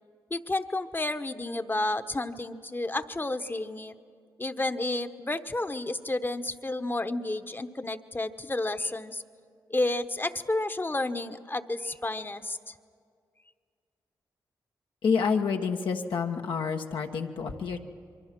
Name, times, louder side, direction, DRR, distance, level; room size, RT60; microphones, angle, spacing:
voice 1, 0.3-3.9 4.4-9.2 9.7-12.7, left 2 dB, 25° left, 10 dB, 1.1 m, -31 dB
voice 2, 15.0-17.8, left 5 dB, 80° left, 3 dB, 1.4 m, -28 dB
26.5 x 23.5 x 6.1 m, 2.2 s
cardioid pair, 55°, 8 cm